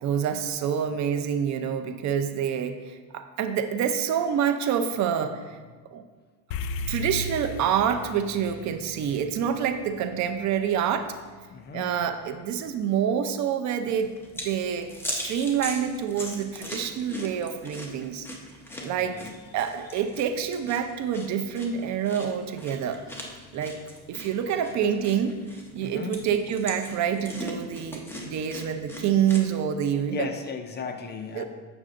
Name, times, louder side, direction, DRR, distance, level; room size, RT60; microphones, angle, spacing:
voice 1, 0.0-5.6 5.9-6.0 6.9-11.1 11.7-18.3 18.8-19.2 19.5-23.3 23.5-23.8 24.1-25.4 25.7-30.3 31.4-31.5, right 8 dB, 55° right, 8 dB, 0.5 m, -27 dB
sound 1, 6.5-11.0, left 2 dB, 90° left, 0.5 m, -36 dB
voice 2, 11.5-11.9 18.7-19.4 24.5-24.8 25.8-26.2 30.1-31.4, left 6 dB, 30° left, 7 dB, 0.4 m, -36 dB
sound 2, 13.9-29.5, left 1 dB, 5° left, 0.7 m, -40 dB
7.7 x 6.1 x 2.5 m, 1.4 s
cardioid pair, 125°, 35 cm